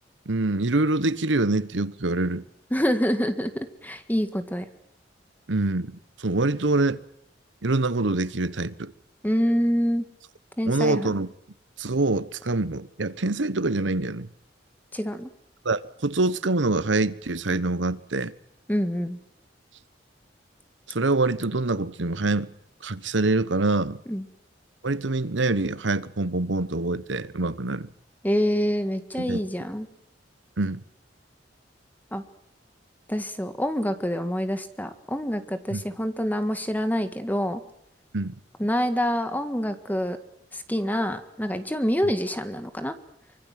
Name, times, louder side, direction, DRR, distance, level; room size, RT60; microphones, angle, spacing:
voice 1, 0.3-2.4 5.5-7.0 7.6-8.9 10.6-11.3 11.8-14.3 15.6-18.3 20.9-22.5 22.8-24.0 24.8-27.9 29.2-29.4 30.6-30.8 35.7-35.8 38.1-38.3, right 2 dB, 90° right, 1.1 m, -25 dB
voice 2, 2.7-4.7 9.2-10.1 10.6-11.1 14.9-15.3 18.7-19.2 24.1-24.2 28.2-29.9 32.1-32.2 33.1-37.6 38.6-40.2 40.5-42.9, equal, 10° left, 1.7 m, -26 dB
24.5 x 23.5 x 7.6 m
head